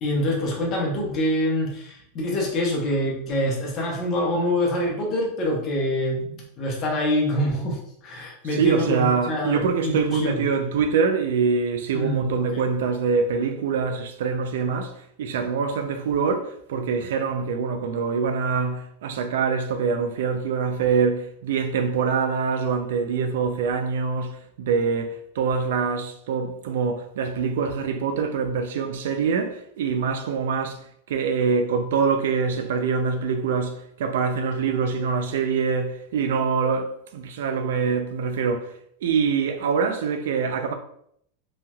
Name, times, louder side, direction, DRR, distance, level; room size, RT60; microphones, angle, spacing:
voice 1, 0.0-10.4 11.9-12.6, left 1 dB, 35° left, 1.0 m, -25 dB
voice 2, 8.5-14.9 15.2-30.8 31.1-38.7 39.0-40.7, right 5 dB, 75° right, 0.4 m, -24 dB
3.2 x 2.7 x 2.3 m
supercardioid pair, 140°, 0 cm